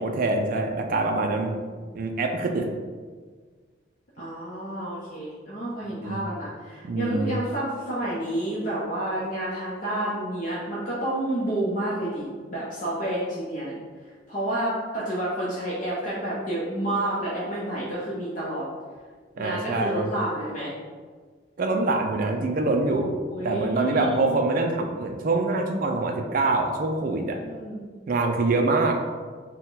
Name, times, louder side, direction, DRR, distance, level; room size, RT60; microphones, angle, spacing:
voice 1, 0.0-1.5 1.9-2.7 6.0-6.2 6.8-7.4 19.4-20.1 21.6-23.1 23.4-27.4 28.1-29.0, right 3 dB, 50° right, 3 dB, 0.4 m, -25 dB
voice 2, 1.0-1.7 4.2-13.7 14.3-18.6 19.4-20.7 23.3-24.4 27.4-27.9, right 1 dB, 45° left, -8 dB, 0.8 m, -30 dB
4.2 x 2.2 x 3.9 m, 1.5 s
head